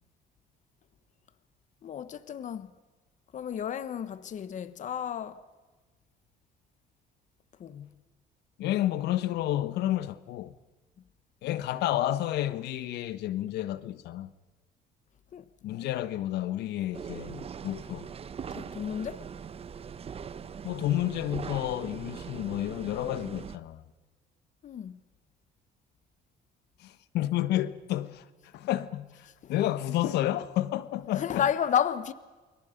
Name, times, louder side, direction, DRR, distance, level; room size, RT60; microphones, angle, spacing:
voice 1, 1.8-2.7 3.3-5.4 7.6-7.9 15.3-15.4 18.5-19.3 24.6-25.0 29.4-29.5 31.1-32.1, left 9 dB, 45° left, 1.1 m, -32 dB
voice 2, 8.6-10.6 11.4-14.3 15.6-18.1 20.6-23.8 26.8-28.2 28.5-31.4, left 13 dB, 80° left, 1.2 m, -30 dB
sound 1, 16.9-23.6, right 7 dB, 35° right, 0.9 m, -41 dB
29.0 x 21.5 x 5.2 m
cardioid pair, 110°, 17 cm